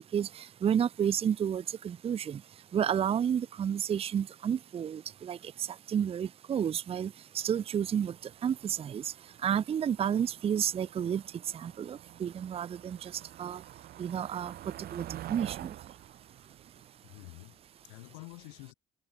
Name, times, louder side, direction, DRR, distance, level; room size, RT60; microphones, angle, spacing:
voice 1, 0.1-2.4 2.7-5.4 5.9-8.1 8.4-9.0 9.4-11.2 11.5-13.1 13.4-13.6 14.0-14.5 14.9-15.7, right 8 dB, 35° right, 0.5 m, -31 dB
Motor vehicle (road), 7.5-17.8, right 13 dB, 65° right, 5.0 m, -48 dB
voice 2, 16.8-18.7, left 36 dB, 80° left, 7.7 m, -49 dB
hypercardioid pair, 55°, 17 cm